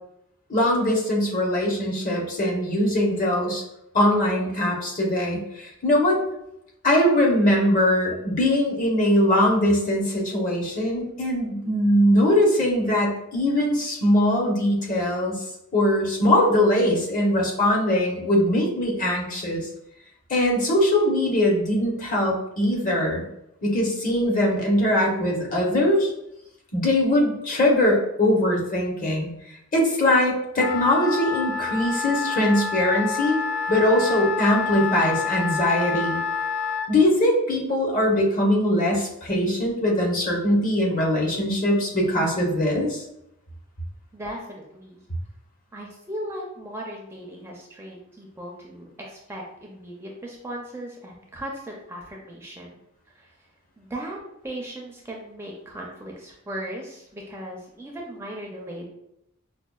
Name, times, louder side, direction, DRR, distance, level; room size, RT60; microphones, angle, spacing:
voice 1, 0.5-3.6 3.9-6.2 6.8-15.4 15.7-19.7 20.3-23.2 23.6-26.1 26.7-29.3 29.7-33.4 33.7-36.2 36.9-43.0, left 1 dB, 40° left, -2 dB, 0.9 m, -21 dB
Wind instrument woodwind instrument, 30.6-36.9, left 5 dB, 85° left, 0.3 m, -28 dB
voice 2, 44.1-45.0 45.7-52.7 53.2-53.3 53.8-54.2 54.4-58.8, right 1 dB, 10° right, -1 dB, 0.5 m, -37 dB
5.2 x 2.2 x 2.3 m, 0.81 s
head